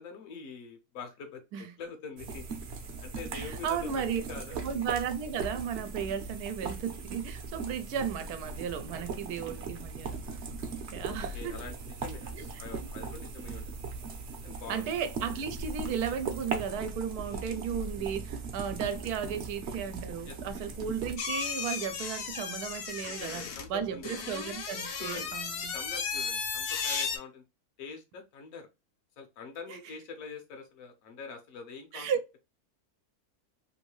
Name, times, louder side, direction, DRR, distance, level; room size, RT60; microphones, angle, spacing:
voice 1, 0.0-2.4 3.0-4.6 11.0-13.9 14.4-14.8 17.2-17.6 20.3-20.4 23.0-24.1 25.0-25.3 25.7-27.4 27.8-28.7 29.2-32.1, left 4 dB, 65° left, 1.2 m, -44 dB
sound 1, 2.2-21.2, right 4 dB, 55° right, 0.9 m, -39 dB
voice 2, 3.3-4.2 4.5-10.2 10.9-11.6 12.3-12.9 14.7-25.7 29.7-29.8 31.9-32.2, right 7 dB, 80° right, 1.1 m, -35 dB
sound 2, 21.2-27.2, left 6 dB, 85° left, 1.3 m, -35 dB
3.2 x 2.6 x 3.0 m
omnidirectional pair, 1.6 m